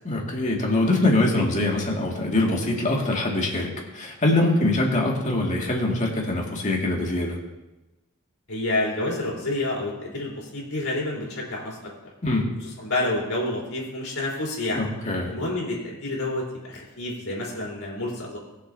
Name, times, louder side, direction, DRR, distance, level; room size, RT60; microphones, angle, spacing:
voice 1, 0.0-7.4 12.2-12.5 14.7-15.3, left 2 dB, 35° left, -1 dB, 2.1 m, -23 dB
voice 2, 8.5-11.8 12.6-14.9 15.3-18.4, left 2 dB, 90° left, -4 dB, 3.9 m, -29 dB
20.5 x 7.2 x 2.7 m, 1.0 s
head